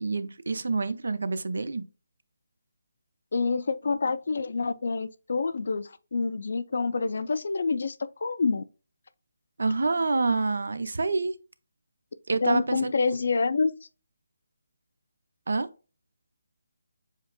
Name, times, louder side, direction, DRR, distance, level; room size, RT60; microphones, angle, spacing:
voice 1, 0.0-1.8 9.6-11.3 12.3-12.9 15.5-15.7, right 3 dB, 75° right, 0.6 m, -27 dB
voice 2, 3.3-8.6 12.4-13.7, left 4 dB, 65° left, 0.5 m, -27 dB
7.2 x 2.4 x 2.2 m
hypercardioid pair, 165°, 0 cm